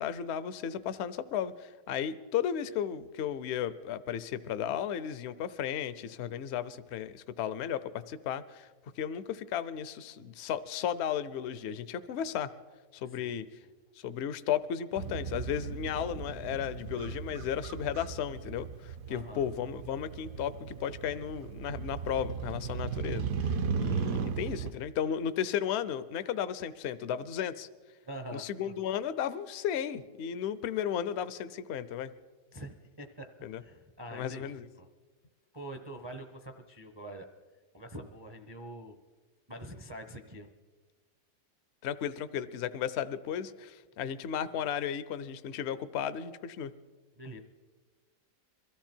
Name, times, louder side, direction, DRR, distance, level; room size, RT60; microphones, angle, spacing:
voice 1, 0.0-8.7 9.0-12.5 12.9-13.5 14.0-27.7 28.3-32.1 33.4-33.6 34.1-34.7 41.8-46.7, left 9 dB, 70° left, 13 dB, 0.6 m, -34 dB
Motorcycle, 15.0-24.7, right 6 dB, 65° right, 1.0 m, -36 dB
voice 2, 19.1-19.4 28.0-28.7 32.5-33.3 33.6-34.9 35.5-37.3 37.7-39.0 39.5-40.5 47.2-47.4, right 1 dB, 30° right, 5 dB, 0.4 m, -45 dB
22.5 x 14.0 x 4.4 m, 1.3 s
omnidirectional pair, 1.8 m